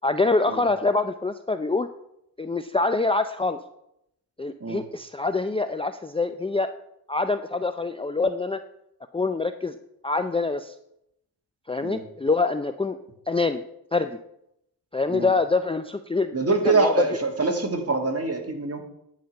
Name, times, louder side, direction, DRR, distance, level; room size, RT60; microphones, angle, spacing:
voice 1, 0.0-1.9 2.4-3.6 4.4-6.7 7.1-8.6 9.1-9.7 10.0-10.7 11.7-13.0 13.3-13.6 13.9-14.2 14.9-16.3 16.6-16.9, left 3 dB, 15° left, 9 dB, 0.5 m, -25 dB
voice 2, 16.3-18.8, right 3 dB, 35° right, 3 dB, 2.2 m, -24 dB
10.5 x 5.1 x 7.6 m, 0.79 s
cardioid pair, 70°, 42 cm